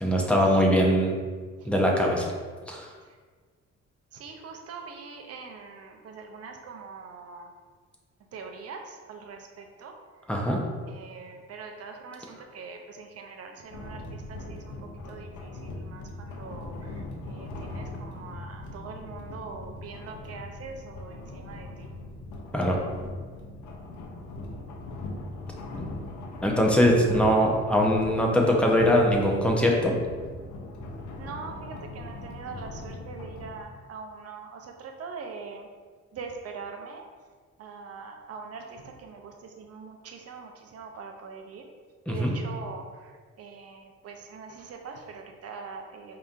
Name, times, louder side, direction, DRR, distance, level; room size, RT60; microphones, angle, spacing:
voice 1, 0.0-1.2 1.6-2.3 2.7-2.9 10.3-10.6 22.5-22.8 25.7-25.9 26.4-30.0 42.1-42.3, equal, 5° left, -1 dB, 0.7 m, -22 dB
voice 2, 4.1-7.5 8.3-10.0 10.9-21.9 31.2-35.7 36.1-37.0 37.6-41.7 42.1-46.2, right 4 dB, 55° right, 4 dB, 0.6 m, -43 dB
sound 1, 13.7-33.6, left 2 dB, 75° left, 0.6 m, -40 dB
4.8 x 2.8 x 2.4 m, 1.5 s
cardioid pair, 90°, 30 cm